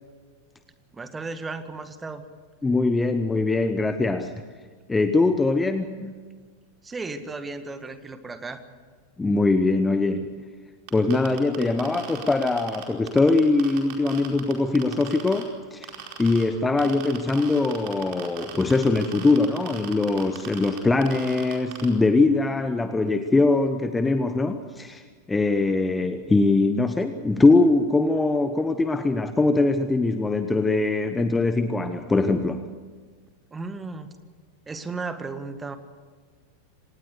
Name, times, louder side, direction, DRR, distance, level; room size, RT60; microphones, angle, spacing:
voice 1, 0.9-2.2 6.8-8.6 33.5-34.1 34.7-35.8, right 3 dB, 15° right, 10 dB, 1.8 m, -34 dB
voice 2, 2.6-4.4 4.9-6.1 9.2-10.5 10.9-15.9 16.2-32.7, left 3 dB, 10° left, 10 dB, 1.0 m, -22 dB
sound 1, 10.9-15.4 15.8-16.4 16.8-21.9, right 10 dB, 45° right, 4.6 m, -38 dB
26.0 x 19.0 x 6.7 m, 1.5 s
figure-of-eight pair, 90°, 0 cm